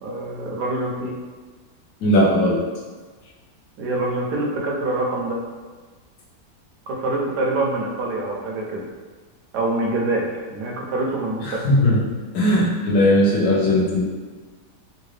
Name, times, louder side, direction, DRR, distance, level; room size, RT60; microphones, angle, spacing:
voice 1, 0.0-1.1 3.8-5.4 6.9-8.8 9.5-11.7, right 2 dB, 80° right, -1 dB, 1.2 m, -25 dB
voice 2, 2.0-2.6 11.4-12.0 12.3-14.1, left 1 dB, 70° left, -5 dB, 1.3 m, -18 dB
3.7 x 2.3 x 3.2 m, 1.4 s
omnidirectional pair, 1.8 m